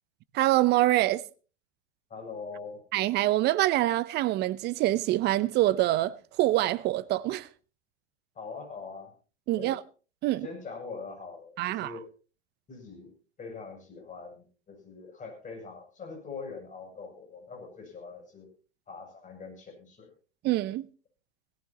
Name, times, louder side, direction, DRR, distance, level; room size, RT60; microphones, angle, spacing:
voice 1, 0.3-1.2 2.9-7.5 9.5-9.8 10.2-10.5 11.6-11.9 20.4-20.9, right 16 dB, 30° right, 0.8 m, -25 dB
voice 2, 2.1-2.8 8.3-9.1 9.6-9.8 10.4-12.1 12.7-13.1 13.4-18.5 18.9-20.1, left 4 dB, 20° left, 7.7 m, -43 dB
17.5 x 17.5 x 3.0 m
figure-of-eight pair, 100°, 34 cm